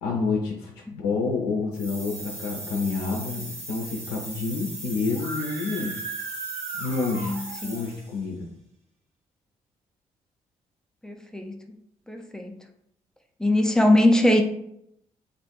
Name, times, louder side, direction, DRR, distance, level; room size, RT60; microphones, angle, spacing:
voice 1, 0.0-6.0 6.8-7.4 7.6-8.5, left 4 dB, 65° left, 0 dB, 0.5 m, -28 dB
sound 1, 1.7-8.2, right 2 dB, 35° right, 1.1 m, -39 dB
Screaming, 5.1-7.9, right 4 dB, 65° right, 0.5 m, -37 dB
voice 2, 7.2-7.8 11.0-11.6 12.1-12.6 13.4-14.4, left 1 dB, 5° left, 4 dB, 0.6 m, -22 dB
2.6 x 2.5 x 3.8 m, 0.75 s
figure-of-eight pair, 40°, 19 cm